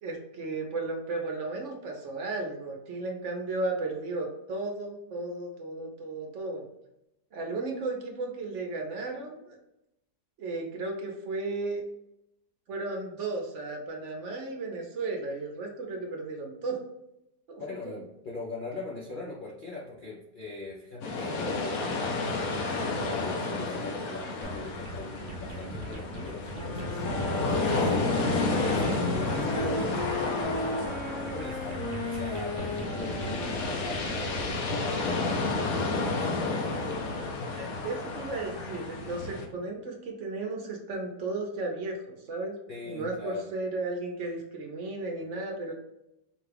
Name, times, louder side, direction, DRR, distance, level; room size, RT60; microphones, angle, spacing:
voice 1, 0.0-6.6 7.3-9.3 10.4-11.8 12.7-16.8 17.5-18.0 37.6-42.6 42.8-45.7, right 3 dB, 55° right, 1 dB, 0.9 m, -34 dB
voice 2, 17.6-22.4 23.1-27.0 27.5-30.0 30.7-36.8 42.7-43.5, left 2 dB, 85° left, -4 dB, 0.4 m, -40 dB
sound 1, 21.0-39.5, left 3 dB, 65° left, 1.0 m, -31 dB
sound 2, 24.4-34.7, right 2 dB, 70° right, 0.5 m, -41 dB
Wind instrument woodwind instrument, 26.4-34.5, left 2 dB, 30° left, 0.7 m, -36 dB
4.9 x 2.3 x 3.3 m, 0.85 s
omnidirectional pair, 1.8 m